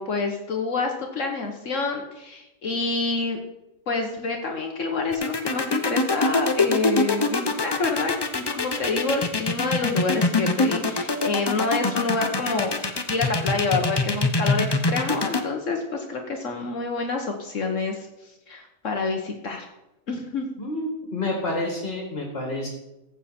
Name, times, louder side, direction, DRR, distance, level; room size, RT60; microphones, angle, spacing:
voice 1, 0.0-3.4 3.9-18.1 18.5-19.7 20.1-20.5, left 3 dB, 65° left, 2 dB, 1.5 m, -27 dB
sound 1, 5.1-15.4, left 3 dB, 25° left, 0.6 m, -23 dB
voice 2, 20.6-22.7, left 2 dB, 45° left, 0 dB, 2.3 m, -29 dB
15.0 x 8.2 x 4.3 m, 0.93 s
omnidirectional pair, 1.4 m